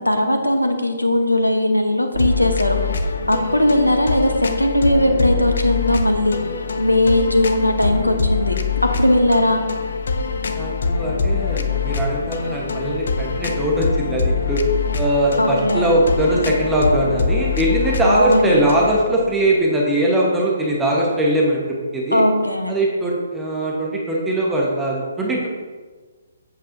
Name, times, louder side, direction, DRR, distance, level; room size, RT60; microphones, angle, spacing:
voice 1, 0.0-2.8 3.3-6.4 6.8-9.6 15.4-15.9 18.0-18.5 22.1-22.8, left 1 dB, 85° left, 5 dB, 1.0 m, -18 dB
sound 1, 2.1-19.0, left 4 dB, 55° left, 0.6 m, -24 dB
voice 2, 10.5-14.6 14.9-21.6 21.9-22.2 22.7-25.5, right 1 dB, 5° right, -4 dB, 1.1 m, -20 dB
8.4 x 7.4 x 2.7 m, 1.4 s
figure-of-eight pair, 130°, 0 cm